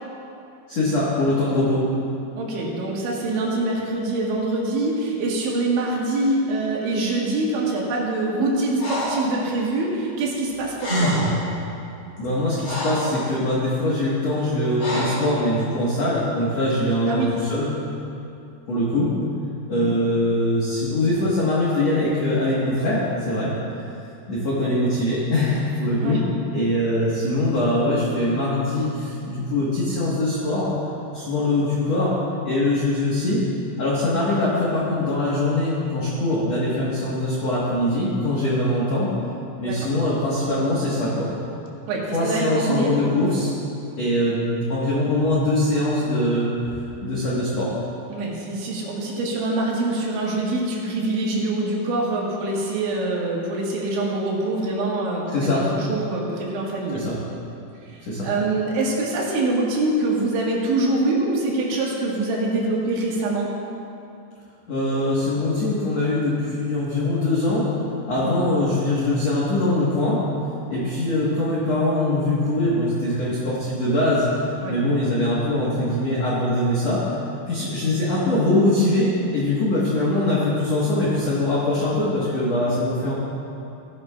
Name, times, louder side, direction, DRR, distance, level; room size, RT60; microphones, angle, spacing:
voice 1, 0.7-1.9 12.2-17.7 18.7-19.1 19.7-23.5 24.3-26.2 26.5-30.7 31.1-32.2 32.4-33.4 33.8-39.1 39.6-41.3 42.1-43.5 44.0-46.5 47.0-47.7 55.3-55.7 56.9-57.2 58.0-58.3 64.7-67.7 68.1-70.2 70.7-74.2 74.7-77.0 77.5-83.1, left 1 dB, 75° left, -8 dB, 1.5 m, -22 dB
voice 2, 2.4-11.2 17.1-17.3 19.7-19.9 26.0-26.2 39.7-39.8 41.9-42.9 48.1-57.0 57.9-63.5 68.2-68.3 74.6-74.8 77.5-77.7, right 2 dB, 75° right, -3 dB, 3.8 m, -24 dB
Breathing, 8.8-9.3 10.5-10.6 10.8-11.5 12.2-13.2 14.8-15.3, equal, 30° left, 2.1 m, -25 dB
16.0 x 11.0 x 2.4 m, 2.7 s
omnidirectional pair, 5.5 m